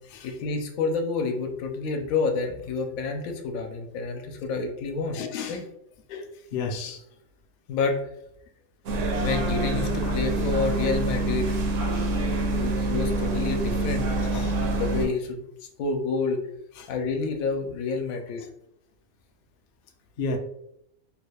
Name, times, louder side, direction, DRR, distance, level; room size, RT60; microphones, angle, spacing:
voice 1, 0.2-5.6 7.7-8.1 9.2-11.6 12.5-15.4 15.8-16.4 16.9-18.5, left 4 dB, 85° left, 4 dB, 1.0 m, -29 dB
voice 2, 5.1-5.6 6.1-7.0 10.0-10.2 14.2-14.6 16.8-16.9 20.2-20.4, left 4 dB, 70° left, 4 dB, 0.5 m, -33 dB
sound 1, 8.9-15.1, right 2 dB, 70° right, 0.9 m, -26 dB
3.2 x 2.3 x 3.3 m, 0.77 s
omnidirectional pair, 1.4 m